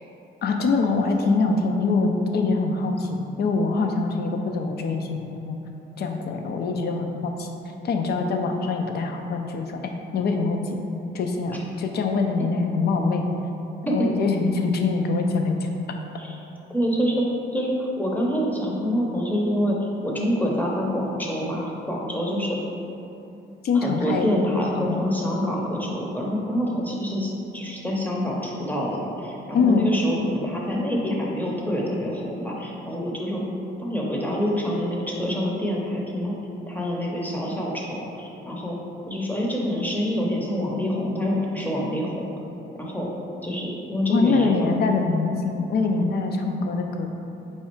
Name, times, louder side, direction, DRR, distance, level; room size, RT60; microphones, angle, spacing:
voice 1, 0.4-5.6 6.0-7.5 7.8-10.6 11.1-13.3 13.9-15.7 23.6-24.3 24.8-25.0 29.5-29.9 44.1-47.1, left 4 dB, 55° left, 4 dB, 0.5 m, -24 dB
voice 2, 16.7-17.3 17.5-22.6 23.7-33.4 33.8-36.3 36.7-38.8 39.1-42.3 42.8-43.1 43.4-44.7, equal, 10° left, -3 dB, 0.7 m, -26 dB
4.3 x 2.3 x 4.4 m, 2.8 s
cardioid pair, 90°, 20 cm